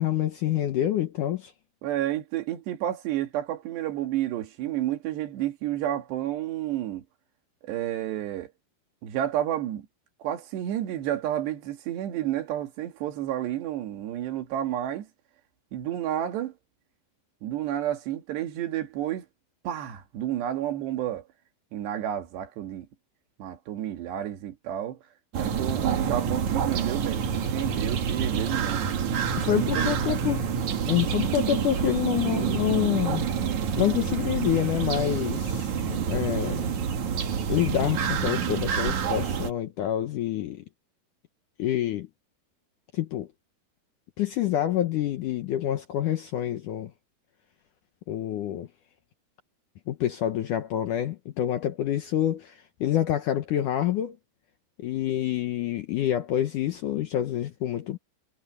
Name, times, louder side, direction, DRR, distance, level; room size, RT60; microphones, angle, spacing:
voice 1, 0.0-1.5 29.4-30.4 30.9-33.3 33.8-36.6 37.5-40.7 41.6-42.1 42.9-43.3 44.2-46.9 48.1-48.7 49.9-52.5 52.8-54.2 54.8-58.0, left 12 dB, 70° left, 2.0 m, -27 dB
voice 2, 1.8-7.0 7.6-8.5 9.0-9.9 10.2-15.1 15.7-16.6 17.4-19.3 19.6-21.2 21.7-22.9 23.4-25.0 25.4-28.9 29.4-30.2, right 12 dB, 80° right, 4.1 m, -30 dB
sound 1, 25.3-39.5, right 7 dB, 50° right, 2.8 m, -28 dB
omnidirectional pair, 4.8 m